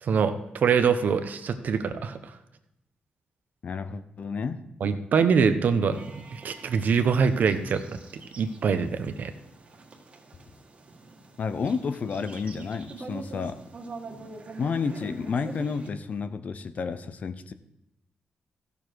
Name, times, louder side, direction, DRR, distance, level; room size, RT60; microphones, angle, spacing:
voice 1, 0.0-2.2 4.8-8.0 8.4-9.3, right 6 dB, 65° right, 9 dB, 0.9 m, -24 dB
voice 2, 3.6-4.6 11.4-13.6 14.6-17.5, left 5 dB, 55° left, 12 dB, 0.7 m, -31 dB
sound 1, 5.9-15.9, right 3 dB, 40° right, 1.7 m, -45 dB
14.5 x 7.0 x 4.6 m, 0.84 s
wide cardioid pair, 115°, 3 cm